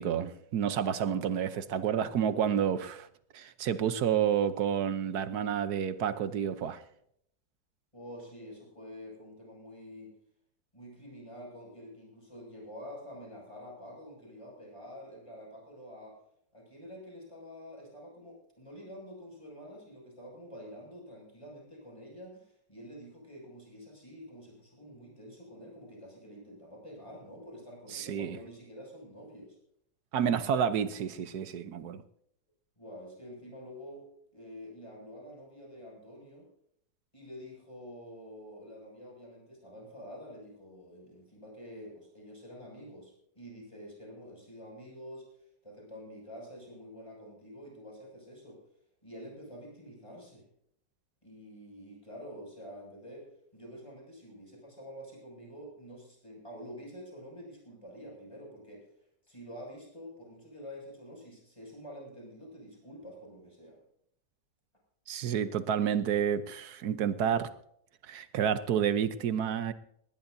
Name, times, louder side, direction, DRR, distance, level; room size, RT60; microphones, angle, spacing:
voice 1, 0.0-3.1 3.3-6.8 27.9-28.4 30.1-32.0 65.1-67.5 68.0-69.7, right 8 dB, 65° right, 12 dB, 1.3 m, -30 dB
voice 2, 7.9-10.1 10.7-16.2 16.5-29.6 32.8-36.5 37.1-48.6 49.0-50.5 51.2-58.9 59.3-63.8, equal, 15° left, -1 dB, 6.7 m, -48 dB
19.5 x 19.0 x 2.7 m, 0.71 s
omnidirectional pair, 1.9 m